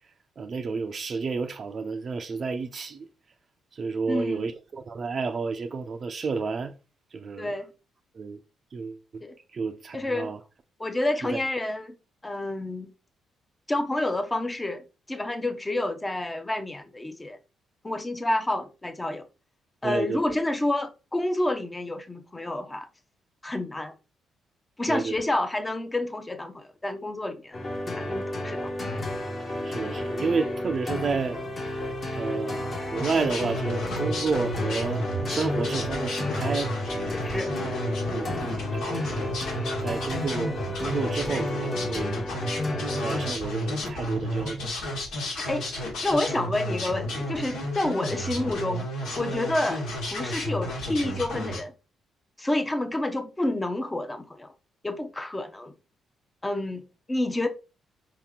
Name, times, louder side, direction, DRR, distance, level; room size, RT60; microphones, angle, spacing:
voice 1, 0.4-3.1 3.7-6.7 7.1-7.6 8.1-8.4 8.7-9.2 9.5-10.4 11.3-11.4 19.8-20.4 24.9-25.1 29.6-31.4 32.2-36.7 38.2-39.3 39.8-42.3 43.0-44.6, right 4 dB, 45° right, 0.4 m, -31 dB
voice 2, 4.1-4.5 7.4-7.7 9.2-9.3 9.9-10.3 10.8-11.9 12.2-12.9 13.7-17.4 17.8-19.2 19.8-22.9 23.4-23.9 24.8-27.6 27.9-28.7 37.2-37.5 45.3-45.7 46.0-48.9 49.1-51.7 52.4-54.5 54.8-55.7 56.4-56.8 57.1-57.5, left 1 dB, 15° left, 0.6 m, -29 dB
sound 1, 27.5-43.3, left 1 dB, 40° left, 1.2 m, -32 dB
sound 2, 32.9-51.6, left 1 dB, 85° left, 1.6 m, -32 dB
4.4 x 2.8 x 3.7 m
cardioid pair, 90°, 0 cm